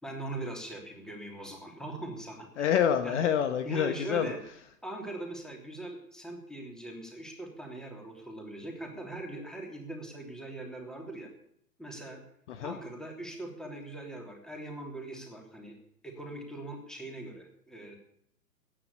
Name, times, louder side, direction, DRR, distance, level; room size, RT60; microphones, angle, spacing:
voice 1, 0.0-2.7 3.0-3.2 3.6-4.4 4.8-11.3 11.8-12.2 12.6-15.8 16.0-18.0, right 2 dB, ahead, 1 dB, 3.1 m, -41 dB
voice 2, 2.6-4.3 12.5-12.7, left 8 dB, 45° left, 9 dB, 1.3 m, -27 dB
14.5 x 10.0 x 8.4 m, 0.71 s
hypercardioid pair, 125°, 48 cm